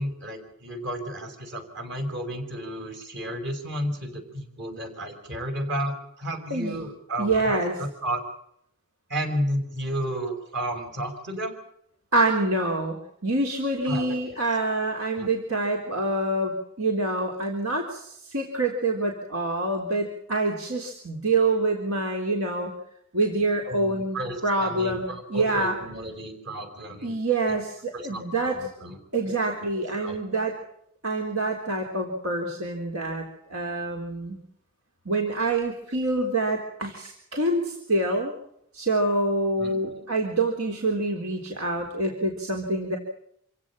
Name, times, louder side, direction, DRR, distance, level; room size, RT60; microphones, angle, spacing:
voice 1, 0.0-8.2 9.1-11.6 13.8-14.4 15.2-15.3 23.6-27.2 27.5-27.6 27.9-29.0 29.2-29.3 29.6-30.2 39.6-40.0, right 1 dB, 55° right, 5 dB, 6.4 m, -32 dB
voice 2, 6.5-6.8 7.2-7.8 12.1-22.7 23.1-24.2 24.4-25.8 27.0-28.6 29.1-30.6 31.0-34.4 35.1-38.3 38.7-43.0, right 2 dB, 85° right, 2 dB, 3.8 m, -26 dB
27.5 x 16.5 x 7.5 m, 0.70 s
head